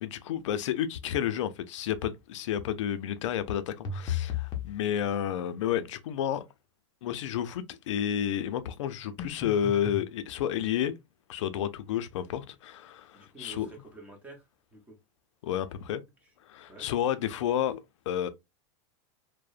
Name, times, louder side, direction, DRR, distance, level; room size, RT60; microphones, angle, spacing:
voice 1, 0.0-6.4 7.0-10.9 11.3-13.7 15.4-16.0 16.5-17.8 18.1-18.3, left 10 dB, 85° left, 0.4 m, -31 dB
sound 1, 3.8-4.7 9.2-10.1, left 8 dB, 25° left, 0.5 m, -33 dB
voice 2, 13.1-15.0 16.2-16.3 16.7-16.9, right 3 dB, 10° right, 0.7 m, -49 dB
2.7 x 2.0 x 2.3 m
supercardioid pair, 160°, 15 cm